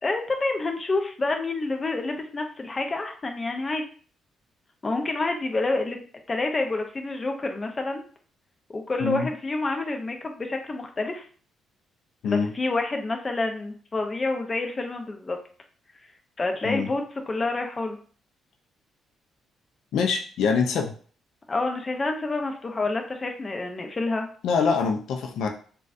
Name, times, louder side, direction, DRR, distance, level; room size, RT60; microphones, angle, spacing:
voice 1, 0.0-3.8 4.8-6.0 6.3-8.0 8.7-11.2 12.2-15.4 16.4-18.0 21.5-24.3, left 2 dB, 30° left, 4 dB, 0.5 m, -28 dB
voice 2, 19.9-20.9 24.4-25.5, left 5 dB, 80° left, 2 dB, 0.4 m, -24 dB
3.9 x 2.3 x 2.5 m, 0.44 s
cardioid pair, 90°, 0 cm